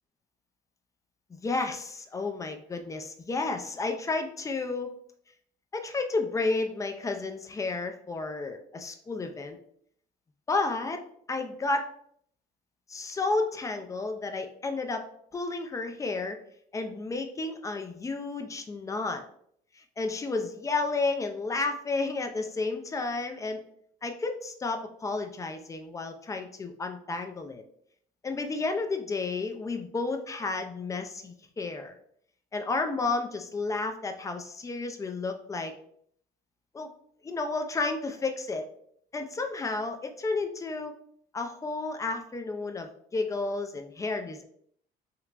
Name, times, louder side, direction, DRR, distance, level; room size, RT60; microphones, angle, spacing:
voice 1, 1.3-4.9 5.7-9.6 10.5-11.0 11.3-11.9 12.9-15.0 15.3-16.4 16.7-19.2 19.8-23.6 24.0-27.6 28.2-31.9 32.5-35.7 36.7-36.9 37.2-38.6 39.1-40.9 41.3-44.4, left 3 dB, 20° left, 5 dB, 0.4 m, -32 dB
3.3 x 2.9 x 2.4 m, 0.65 s
cardioid pair, 110°, 17 cm